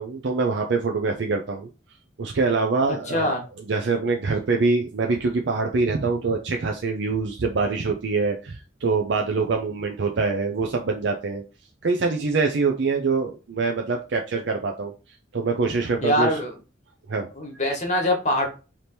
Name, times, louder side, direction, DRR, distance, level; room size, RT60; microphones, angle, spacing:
voice 1, 0.0-1.7 2.2-3.3 3.7-11.4 11.8-14.9 15.3-16.3 17.1-17.3, right 4 dB, 65° right, 3 dB, 0.5 m, -24 dB
voice 2, 2.9-3.4 16.0-16.5 17.4-18.5, equal, 40° left, 1 dB, 1.3 m, -23 dB
3.4 x 2.9 x 4.3 m, 0.32 s
head